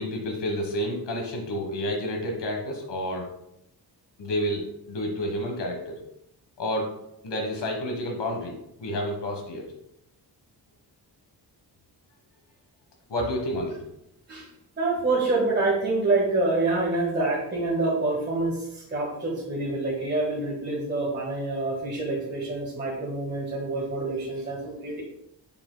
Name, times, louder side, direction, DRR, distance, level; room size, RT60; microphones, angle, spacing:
voice 1, 0.0-3.3 4.2-6.0 6.6-6.9 7.2-9.6 13.1-13.8, equal, 80° left, 1 dB, 1.4 m, -30 dB
voice 2, 14.8-25.0, right 2 dB, 25° right, -5 dB, 1.6 m, -26 dB
7.9 x 7.0 x 2.2 m, 0.80 s
wide cardioid pair, 165°, 41 cm